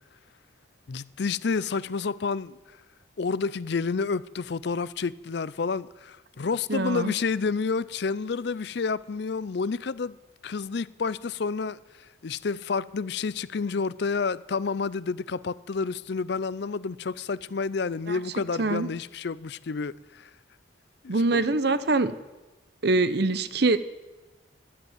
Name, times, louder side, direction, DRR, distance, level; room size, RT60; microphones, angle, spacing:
voice 1, 0.9-2.6 3.2-10.2 10.4-20.3 21.0-21.4, left 4 dB, 55° left, 0.5 m, -29 dB
voice 2, 6.7-7.1 18.1-18.2 18.6-18.9 21.1-22.1 22.8-23.8, right 3 dB, 55° right, 0.8 m, -24 dB
13.5 x 11.0 x 9.4 m
head